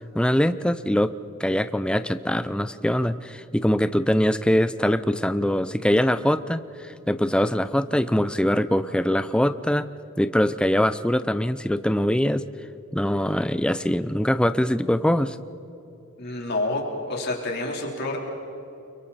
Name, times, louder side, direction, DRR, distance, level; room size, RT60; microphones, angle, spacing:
voice 1, 0.1-1.1 1.4-9.9 10.2-12.5 12.9-15.4, equal, 5° left, 12 dB, 0.5 m, -23 dB
voice 2, 16.2-18.2, left 2 dB, 50° left, -1 dB, 3.8 m, -28 dB
29.0 x 24.0 x 4.3 m, 2.9 s
head